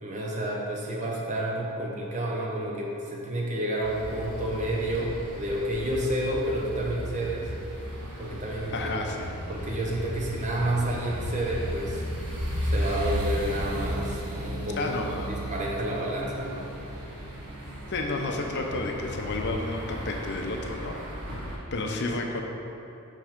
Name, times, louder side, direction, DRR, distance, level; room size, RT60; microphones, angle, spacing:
voice 1, 0.0-7.5 8.2-8.9 9.5-12.0 12.7-14.9 15.3-16.7, right 1 dB, 35° right, -3 dB, 1.0 m, -30 dB
sound 1, 3.8-21.6, equal, 85° right, 1.3 m, -35 dB
voice 2, 8.7-9.3 14.8-15.3 17.9-21.0 21.3-21.4 21.7-22.4, left 2 dB, 50° left, 2 dB, 0.6 m, -31 dB
6.1 x 5.4 x 5.1 m, 2.9 s
head